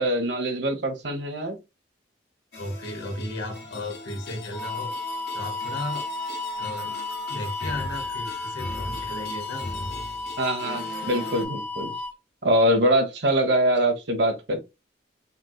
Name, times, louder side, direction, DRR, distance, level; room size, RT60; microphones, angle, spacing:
voice 1, 0.0-1.6 10.4-11.9 12.4-14.6, right 1 dB, 75° right, 1.1 m, -23 dB
sound 1, 2.5-11.4, left 1 dB, 65° left, 1.5 m, -39 dB
voice 2, 2.6-4.9 5.3-6.0 6.5-6.9 7.3-9.7, left 1 dB, 90° left, 1.6 m, -35 dB
sound 2, 4.5-12.1, left 3 dB, 10° left, 0.3 m, -33 dB
5.1 x 3.2 x 2.3 m
head